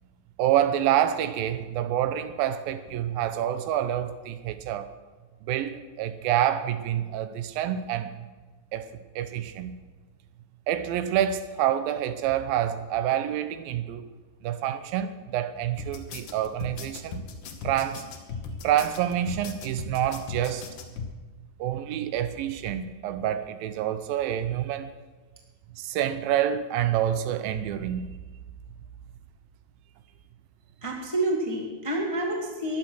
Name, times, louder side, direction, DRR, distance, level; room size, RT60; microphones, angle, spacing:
voice 1, 0.4-4.9 5.4-8.1 8.7-9.8 10.7-14.1 14.4-17.2 17.6-18.0 18.6-20.7 21.6-24.9 25.8-28.1, right 11 dB, 85° right, 11 dB, 2.6 m, -27 dB
sound 1, 15.8-21.1, left 4 dB, 65° left, 2.5 m, -38 dB
voice 2, 30.8-32.8, right 1 dB, 20° left, -1 dB, 0.9 m, -28 dB
14.5 x 11.0 x 6.2 m, 1.3 s
omnidirectional pair, 4.1 m